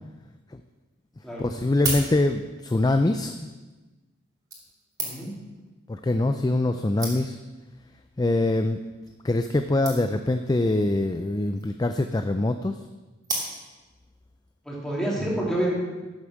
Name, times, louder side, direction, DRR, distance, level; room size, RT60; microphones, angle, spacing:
sound 1, 0.7-0.8 1.5-2.6 3.5-3.7 4.5-5.5 6.3-6.4 6.7-6.8 7.0-7.5 8.2-8.5 8.8-8.9 9.1-9.2 9.4-9.5 9.9-10.3 11.3-11.8 13.2-13.9 14.5-14.6, right 2 dB, 15° right, 2.4 m, -34 dB
voice 1, 1.4-3.5 5.9-7.4 8.2-8.8 9.2-12.8, left 2 dB, 20° left, 7 dB, 0.4 m, -24 dB
voice 2, 5.0-5.3 14.6-15.7, right 1 dB, 5° left, -5 dB, 2.9 m, -28 dB
11.5 x 8.5 x 6.4 m, 1.2 s
head